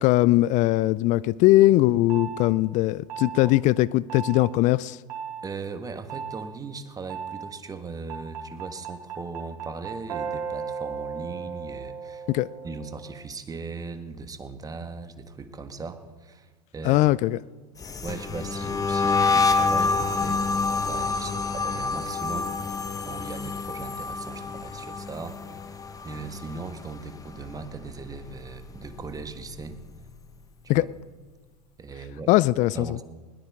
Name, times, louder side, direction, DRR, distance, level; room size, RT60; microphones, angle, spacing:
voice 1, 0.0-5.0 12.3-12.5 16.8-17.4 30.7-30.8 32.3-32.9, left 17 dB, 35° left, 21 dB, 0.4 m, -20 dB
sound 1, 2.1-2.4 3.1-3.5 4.1-4.5 5.1-5.4 6.1-6.4 7.1-7.5 8.1-13.2, right 7 dB, 65° right, 3.2 m, -35 dB
voice 2, 5.4-12.3 12.6-17.1 18.0-20.4 20.7-25.4 26.0-29.8 30.6-30.9 31.8-32.3 32.7-33.0, right 4 dB, 15° right, 8 dB, 1.5 m, -38 dB
sound 2, 17.8-27.0 27.2-27.7 28.0-29.6, left 4 dB, 15° left, 1.1 m, -27 dB
20.5 x 18.0 x 3.7 m, 1.4 s
hypercardioid pair, 90°, 21 cm